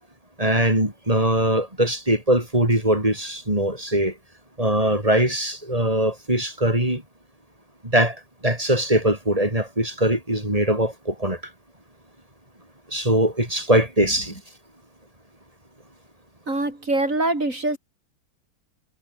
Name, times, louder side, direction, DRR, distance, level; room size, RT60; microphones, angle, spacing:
voice 1, 0.4-4.1 4.6-7.0 7.8-8.2 8.4-11.4 12.9-14.3, right 1 dB, 15° right, 5.9 m, -21 dB
voice 2, 16.5-17.8, right 2 dB, 35° right, 6.6 m, -24 dB
omnidirectional pair, 2.3 m